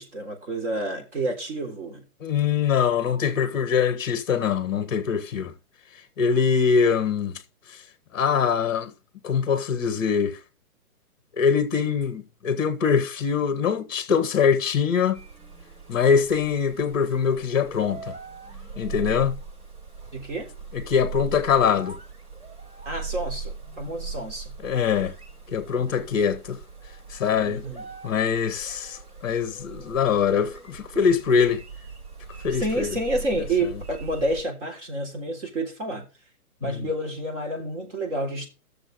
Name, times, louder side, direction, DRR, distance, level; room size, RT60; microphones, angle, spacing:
voice 1, 0.0-2.1 20.1-20.5 22.9-24.5 27.4-27.9 32.5-36.1 36.6-38.5, right 1 dB, 50° right, 3.6 m, -29 dB
voice 2, 2.2-5.5 6.2-7.4 8.1-8.9 9.2-10.4 11.4-15.2 15.9-18.2 18.8-19.4 20.7-22.0 24.6-25.1 25.5-26.6 27.1-27.6 28.0-31.6 32.4-32.9 36.6-36.9, left 6 dB, 15° left, 0.8 m, -23 dB
sound 1, 15.1-34.4, right 5 dB, 80° right, 5.4 m, -40 dB
12.0 x 6.9 x 3.9 m
hypercardioid pair, 170°, 45 cm